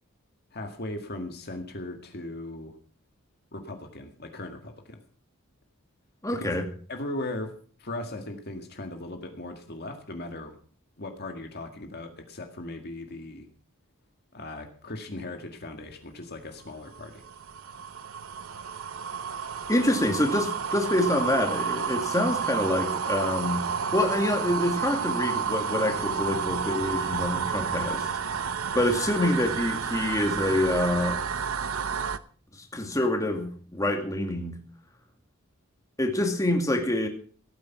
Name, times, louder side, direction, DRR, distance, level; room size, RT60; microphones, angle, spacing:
voice 1, 0.5-2.7 3.5-5.0 6.3-6.6 6.9-7.5 7.8-10.5 11.0-13.5 14.3-17.2, left 2 dB, 50° left, 5 dB, 1.9 m, -38 dB
voice 2, 6.2-6.6 19.7-23.7 23.9-28.1 28.7-31.2 32.7-34.6 36.0-37.1, left 1 dB, 15° left, 3 dB, 2.4 m, -26 dB
sound 1, 16.6-32.2, right 6 dB, 80° right, 0.8 m, -31 dB
17.0 x 9.5 x 5.9 m, 0.44 s
head